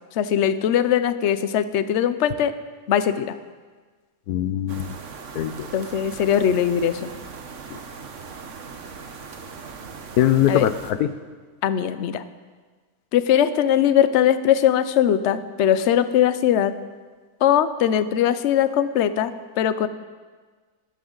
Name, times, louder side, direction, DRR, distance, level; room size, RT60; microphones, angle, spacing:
voice 1, 0.1-2.5 2.9-3.3 5.7-7.1 10.5-10.7 11.6-12.2 13.1-16.7 17.4-19.9, left 10 dB, 60° left, 12 dB, 0.8 m, -20 dB
voice 2, 4.3-5.0 5.3-5.7 7.7-7.8 10.2-11.1, left 11 dB, 90° left, 11 dB, 1.2 m, -22 dB
sound 1, 4.7-10.9, right 5 dB, 55° right, 1.3 m, -39 dB
19.5 x 12.5 x 3.9 m, 1.5 s
omnidirectional pair, 1.6 m